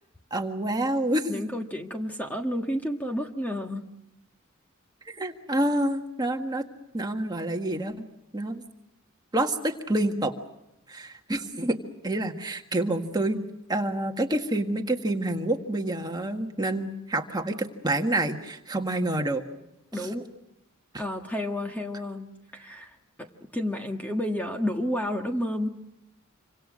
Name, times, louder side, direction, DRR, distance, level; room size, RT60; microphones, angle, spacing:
voice 1, 0.3-1.4 5.1-6.6 6.9-7.9 8.3-8.6 9.3-10.3 10.9-11.8 12.0-13.4 13.7-17.5 17.8-19.4 20.0-20.1, right 1 dB, 20° right, 4 dB, 1.7 m, -27 dB
voice 2, 1.3-3.9 19.9-20.2 21.0-22.3 22.5-23.3 23.5-25.7, left 1 dB, 10° left, 3 dB, 1.5 m, -30 dB
27.5 x 25.5 x 6.4 m, 0.89 s
head